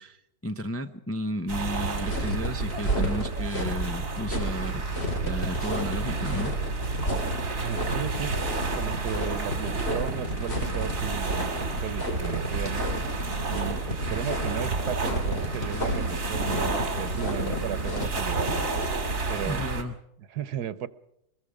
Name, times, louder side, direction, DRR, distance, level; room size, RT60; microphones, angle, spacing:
voice 1, 0.0-4.8 5.2-6.6 19.5-19.9, equal, 15° left, 7 dB, 0.5 m, -33 dB
sound 1, 1.5-19.8, right 3 dB, 60° right, 2.8 m, -31 dB
sound 2, 2.0-19.1, equal, 40° left, 3.8 m, -32 dB
voice 2, 7.6-8.4 8.7-12.9 13.5-18.6 19.3-19.6 20.3-20.9, right 10 dB, 85° right, 15 dB, 1.5 m, -35 dB
24.5 x 22.0 x 5.0 m, 0.79 s
omnidirectional pair, 1.7 m